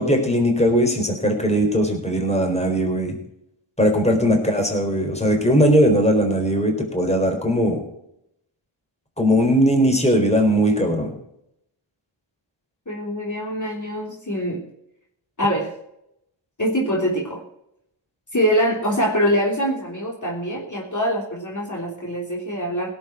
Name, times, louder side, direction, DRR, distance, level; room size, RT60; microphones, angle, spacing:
voice 1, 0.0-3.2 3.8-7.8 9.2-11.1, equal, 15° left, 3 dB, 4.1 m, -19 dB
voice 2, 4.0-4.3 12.9-14.6 15.4-15.7 16.6-17.4 18.3-22.9, equal, 35° left, -2 dB, 3.4 m, -24 dB
17.0 x 7.9 x 6.1 m, 0.78 s
cardioid pair, 45°, 50 cm